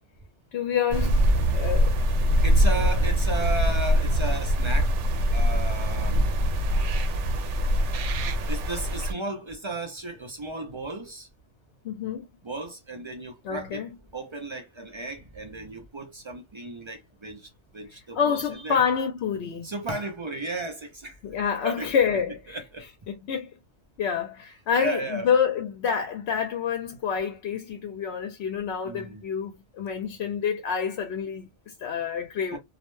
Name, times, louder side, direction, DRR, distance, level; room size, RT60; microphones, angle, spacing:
voice 1, 0.5-1.2 1.5-1.9 11.8-12.3 13.4-13.9 18.1-19.7 21.2-22.6 23.1-23.5 24.0-32.6, left 7 dB, 70° left, 0.8 m, -27 dB
sound 1, 0.9-9.1, equal, 80° right, 0.9 m, -23 dB
voice 2, 2.4-4.9 5.3-6.3 8.5-11.3 12.4-13.9 14.1-18.8 19.6-21.2 21.6-21.9 22.5-22.9 24.8-25.3 28.8-29.2 32.5-32.6, right 2 dB, 45° right, 0.3 m, -34 dB
2.3 x 2.1 x 3.0 m
omnidirectional pair, 1.2 m